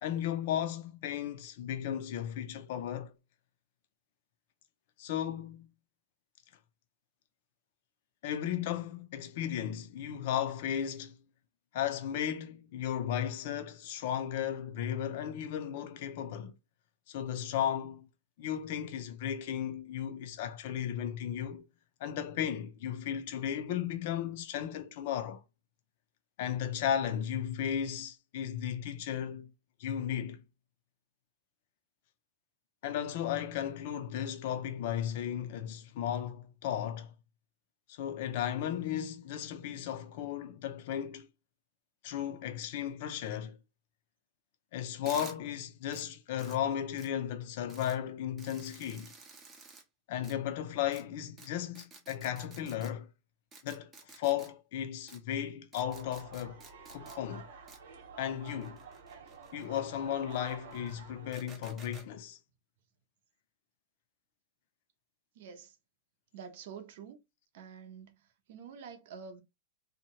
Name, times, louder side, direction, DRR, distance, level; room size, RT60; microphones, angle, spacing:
voice 1, 0.0-3.1 5.0-5.7 8.2-11.2 11.7-16.5 17.1-18.1 18.4-21.6 22.0-25.4 26.4-29.5 29.8-30.4 32.8-37.1 37.9-41.3 42.0-43.6 44.7-49.1 50.1-53.1 53.6-56.6 56.9-57.5 58.2-58.8 59.5-62.4, left 10 dB, 50° left, 0.4 m, -35 dB
sound 1, 45.1-45.3 45.9-46.0 46.4-46.6 47.0-47.1 47.7-48.0 48.4-49.8 50.2-50.3 50.9-51.0 51.4-51.5 51.7-52.9 53.5-54.5 55.1-55.2 55.7-57.2 57.7-57.8 58.5-59.8 60.3-60.9 61.3-62.1, right 4 dB, 15° right, 0.6 m, -52 dB
sound 2, 55.8-61.3, right 5 dB, 80° right, 1.0 m, -50 dB
voice 2, 65.3-65.8 66.3-67.2 67.5-68.2 68.5-69.4, right 6 dB, 55° right, 0.7 m, -47 dB
2.7 x 2.2 x 2.8 m
supercardioid pair, 165°, 0 cm